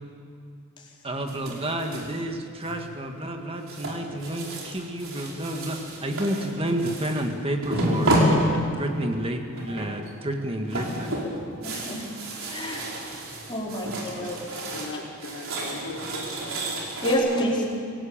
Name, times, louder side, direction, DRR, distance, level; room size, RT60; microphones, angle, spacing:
voice 1, 1.0-11.1, right 1 dB, 25° right, 4 dB, 1.7 m, -30 dB
sound 1, 1.3-2.2 2.6-3.0 3.7-7.3 7.6-9.0 9.6-10.1 10.4-14.9 15.2-17.1, right 1 dB, 60° right, 5.1 m, -29 dB
voice 2, 11.6-12.1 12.5-12.9 13.5-13.9 14.1-14.3 17.0-17.6, equal, 20° left, -3 dB, 4.6 m, -27 dB
voice 3, 13.5-14.4 14.7-16.4, left 2 dB, 90° left, 0 dB, 4.3 m, -40 dB
25.0 x 17.0 x 8.9 m, 2.5 s
head